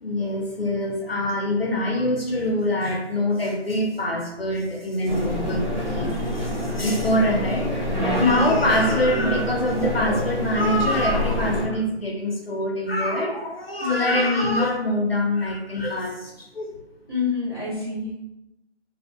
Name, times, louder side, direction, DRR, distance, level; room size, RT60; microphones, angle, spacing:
voice 1, 0.0-16.7, left 1 dB, 55° left, 0 dB, 0.4 m, -24 dB
sound 1, 5.1-11.6, equal, 40° right, 1.1 m, -26 dB
voice 2, 8.2-8.6 13.8-14.3 17.1-18.2, left 4 dB, 20° right, -10 dB, 0.8 m, -26 dB
2.5 x 2.0 x 2.4 m, 0.90 s
figure-of-eight pair, 170°, 36 cm